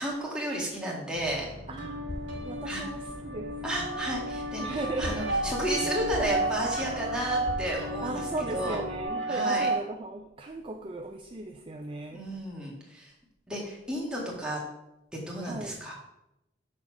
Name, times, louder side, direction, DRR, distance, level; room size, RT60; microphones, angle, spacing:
voice 1, 0.0-1.5 2.6-2.9 3.6-8.8 9.3-9.7 12.1-13.1 13.5-14.6 15.1-15.9, right 1 dB, 5° right, -4 dB, 2.0 m, -32 dB
sound 1, 1.1-9.1, left 1 dB, 85° left, 1.7 m, -44 dB
voice 2, 1.7-2.0 2.4-3.6 4.6-5.2 8.0-12.2 14.2-14.4 15.4-15.8, right 2 dB, 30° right, 3 dB, 0.5 m, -37 dB
sound 2, 1.8-9.8, right 2 dB, 75° right, 1.8 m, -32 dB
sound 3, 2.1-7.7, left 1 dB, 65° left, 0.8 m, -44 dB
6.4 x 4.3 x 6.1 m, 0.86 s
head